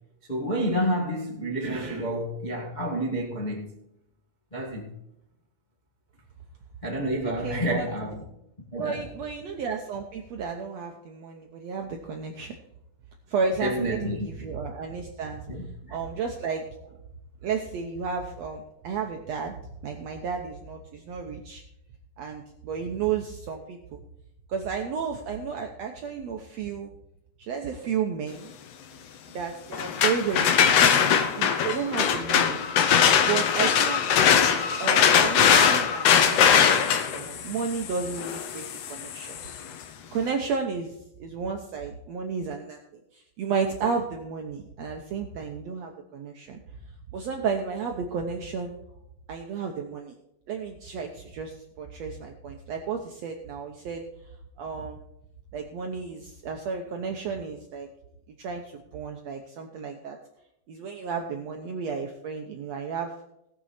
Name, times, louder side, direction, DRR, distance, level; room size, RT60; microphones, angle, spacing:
voice 1, 0.3-3.7 4.5-4.9 6.8-8.2 8.7-9.0 13.6-14.3 15.5-16.0, equal, 50° left, 0.5 m, -29 dB
voice 2, 7.4-7.9 8.8-12.5 13.3-15.4 15.9-17.0 17.4-19.5 19.8-21.6 22.2-24.0 24.5-26.9 27.4-28.5 29.3-32.6 33.3-34.0 34.8-39.4 40.1-46.6 47.1-48.7 49.3-50.1 50.5-54.0 54.6-55.0 55.5-57.9 58.4-60.2 60.7-63.1, right 6 dB, 80° right, 1.5 m, -32 dB
sound 1, 29.7-39.6, left 7 dB, 90° left, 1.4 m, -21 dB
18.0 x 7.0 x 4.3 m
omnidirectional pair, 4.3 m